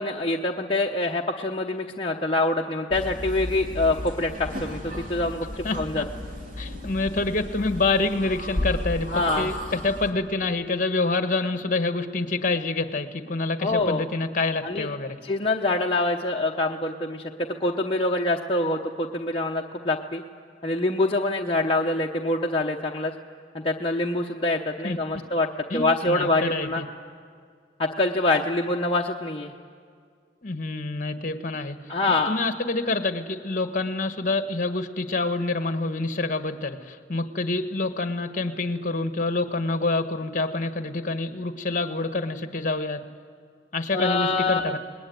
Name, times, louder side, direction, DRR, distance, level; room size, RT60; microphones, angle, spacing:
voice 1, 0.0-6.0 9.1-9.5 13.6-14.0 14.6-14.9 15.2-20.2 20.6-23.1 23.5-26.8 27.8-29.5 31.9-32.4 43.9-44.7, left 2 dB, 30° left, -1 dB, 1.0 m, -25 dB
sound 1, 2.9-10.1, left 1 dB, 50° right, 3.1 m, -34 dB
voice 2, 5.6-6.1 6.6-15.2 24.8-25.2 25.7-26.8 30.4-31.8 32.1-43.0 43.7-44.8, left 3 dB, 50° left, 8 dB, 1.4 m, -27 dB
27.5 x 20.5 x 9.4 m, 2.1 s
head